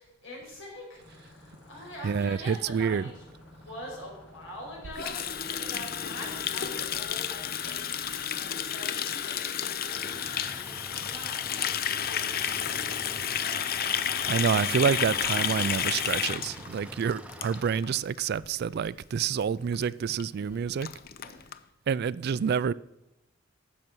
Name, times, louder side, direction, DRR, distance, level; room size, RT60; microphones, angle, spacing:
voice 1, 0.0-3.2 3.6-12.8 13.2-13.8 20.3-20.6 21.2-21.6, left 1 dB, 85° left, 5.4 m, -45 dB
sound 1, 1.0-8.8, left 1 dB, 70° left, 4.6 m, -52 dB
voice 2, 2.0-3.1 14.3-20.9 21.9-22.7, right 7 dB, 55° right, 0.3 m, -28 dB
Water tap faucet, 4.9-18.0 18.2-18.5 18.8-19.1 19.4-19.5 19.7-19.8 20.2-20.3 20.5-21.6, left 9 dB, 50° left, 0.5 m, -31 dB
sound 2, 9.9-17.8, right 1 dB, 5° right, 0.7 m, -45 dB
12.0 x 7.6 x 6.1 m
head